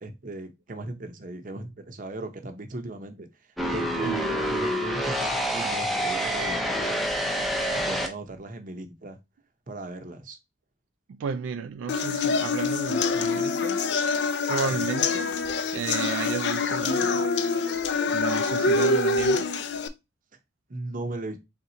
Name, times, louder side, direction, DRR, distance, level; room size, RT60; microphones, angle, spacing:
voice 1, 0.0-3.3 3.7-7.1 7.7-9.2 9.7-10.4 14.8-14.9 20.7-21.4, right 2 dB, 45° right, 0.7 m, -37 dB
intro-industry, 3.6-8.1, equal, ahead, 0.6 m, -27 dB
voice 2, 4.0-4.5 11.1-13.8 14.5-15.4 15.7-17.3 18.1-19.5, right 6 dB, 85° right, 0.3 m, -33 dB
sound 1, 11.9-19.9, left 4 dB, 65° left, 0.5 m, -25 dB
4.2 x 3.6 x 2.7 m
head